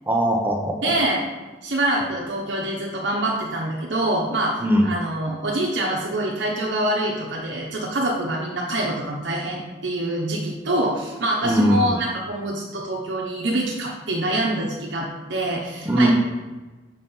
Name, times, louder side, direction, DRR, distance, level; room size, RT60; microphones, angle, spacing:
voice 1, 0.1-0.8 4.6-4.9 11.4-11.9 15.9-16.1, right 1 dB, 10° right, 0 dB, 0.9 m, -19 dB
voice 2, 0.8-1.2 1.6-16.1, right 1 dB, 75° right, -3 dB, 1.0 m, -25 dB
6.0 x 4.3 x 5.4 m, 1.2 s
head